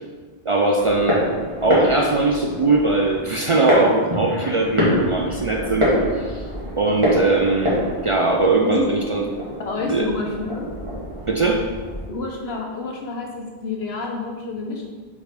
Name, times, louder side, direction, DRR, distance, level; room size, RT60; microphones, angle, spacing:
voice 1, 0.5-1.2 1.6-6.5 6.8-7.7 8.0-9.2 9.9-10.1 11.3-11.7, right 3 dB, 45° right, 1 dB, 0.4 m, -20 dB
sound 1, 0.8-12.1, equal, 30° right, 1.8 m, -25 dB
voice 2, 9.6-10.7 12.1-14.9, left 4 dB, 80° left, 0 dB, 1.3 m, -28 dB
4.9 x 4.4 x 5.1 m, 1.4 s
omnidirectional pair, 1.0 m